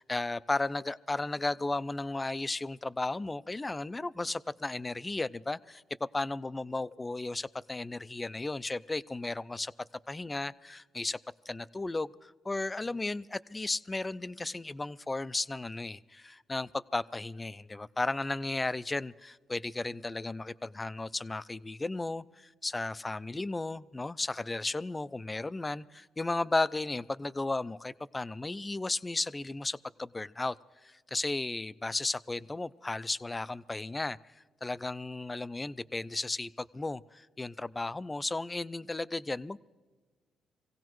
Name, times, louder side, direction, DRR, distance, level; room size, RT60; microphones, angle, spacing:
voice 1, 0.0-5.8 6.1-9.7 10.1-11.2 11.5-30.6 30.8-39.6, left 2 dB, 20° left, 16 dB, 0.4 m, -34 dB
25.5 x 16.5 x 3.1 m, 1.3 s
cardioid pair, 90°, 0 cm